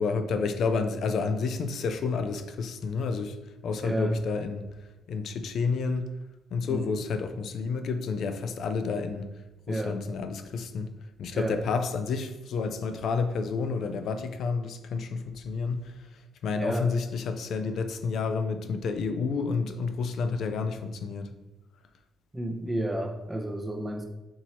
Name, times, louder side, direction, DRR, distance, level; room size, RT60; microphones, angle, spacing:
voice 1, 0.0-3.4 3.6-4.6 5.1-6.1 6.5-9.3 9.7-10.9 11.2-21.3, left 4 dB, 70° left, 9 dB, 0.4 m, -30 dB
voice 2, 3.8-4.2 6.7-6.9 9.7-10.0 11.3-11.6 16.5-16.9 22.3-24.0, right 1 dB, 15° right, 2 dB, 0.7 m, -31 dB
4.5 x 2.8 x 4.2 m, 1.0 s
cardioid pair, 90°, 0 cm